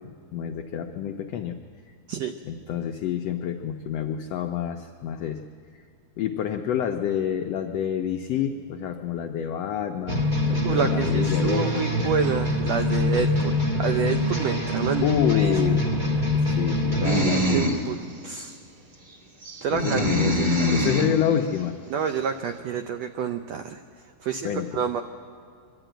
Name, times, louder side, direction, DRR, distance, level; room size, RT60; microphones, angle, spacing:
voice 1, 0.0-1.6 2.4-5.4 6.2-11.8 15.0-17.7 19.7-21.7 24.4-24.7, left 9 dB, 85° left, 5 dB, 1.4 m, -28 dB
sound 1, 10.1-17.2, left 2 dB, 65° right, 0.4 m, -24 dB
voice 2, 10.6-15.8 16.9-18.0 18.2-18.5 19.6-20.3 21.9-23.8 24.2-25.0, right 6 dB, 90° right, 7 dB, 1.4 m, -29 dB
sound 2, 17.0-17.8 18.4-18.5 19.4-21.2, equal, 35° right, 2.0 m, -23 dB
23.5 x 13.0 x 9.1 m, 2.2 s
omnidirectional pair, 3.8 m